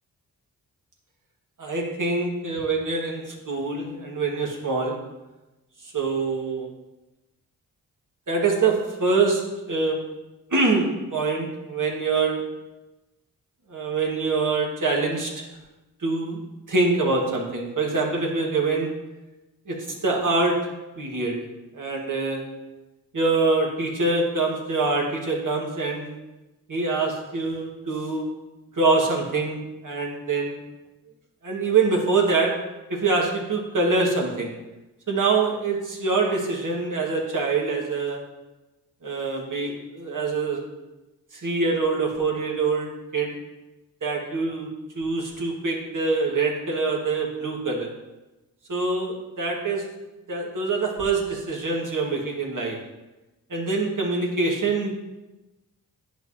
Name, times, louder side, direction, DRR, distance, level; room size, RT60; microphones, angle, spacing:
voice 1, 1.6-5.0 5.8-6.7 8.3-10.0 10.5-12.4 13.7-15.5 16.0-16.4 16.7-18.9 19.7-20.6 21.0-21.4 21.7-22.4 23.1-26.1 26.7-28.3 28.7-30.6 31.4-32.5 32.9-34.5 35.1-38.2 39.0-40.6 41.3-43.3 44.0-44.7 44.9-47.9 48.7-49.8 50.3-52.8 53.5-54.9, right 3 dB, 55° right, -1 dB, 1.7 m, -25 dB
10.0 x 4.7 x 2.8 m, 1.1 s
cardioid pair, 55°, 38 cm